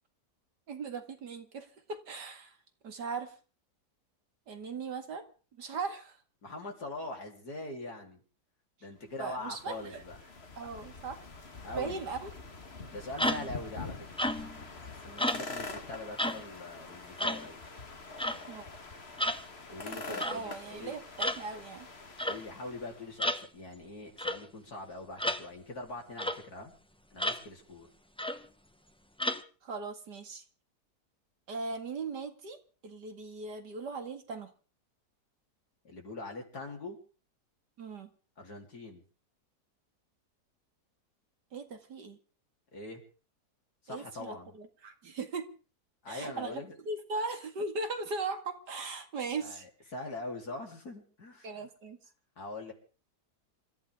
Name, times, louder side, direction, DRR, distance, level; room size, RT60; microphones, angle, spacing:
voice 1, 0.7-2.6 2.8-3.3 4.5-5.3 5.6-6.2 9.2-10.0 10.6-11.2 11.7-12.3 18.5-18.6 19.9-21.9 29.6-30.4 31.5-32.6 32.8-34.5 37.8-38.1 41.5-42.2 43.9-45.5 46.1-49.7 51.4-52.0, right 4 dB, 85° right, 6 dB, 2.7 m, -38 dB
voice 2, 6.4-8.2 8.8-10.2 11.6-12.0 12.9-14.1 14.9-17.6 19.7-20.9 22.2-26.7 27.1-27.9 35.8-37.0 38.4-39.0 42.7-43.0 43.8-44.6 46.0-46.8 49.4-51.7 52.4-52.7, left 2 dB, 70° left, 1 dB, 4.2 m, -43 dB
sound 1, 9.1-23.2, left 3 dB, 40° left, 1.9 m, -45 dB
sound 2, 13.2-13.6 14.2-14.6 15.2-15.5 16.2-16.4 17.2-17.5 18.2-18.4 19.2-19.4 20.2-20.4 21.2-21.4 22.2-22.4 23.2-23.4 24.2-24.4 25.2-25.4 26.2-26.4 27.2-27.4 28.2-28.5 29.2-29.4, left 1 dB, 5° left, 0.7 m, -32 dB
27.5 x 14.5 x 3.7 m, 0.38 s
omnidirectional pair, 1.7 m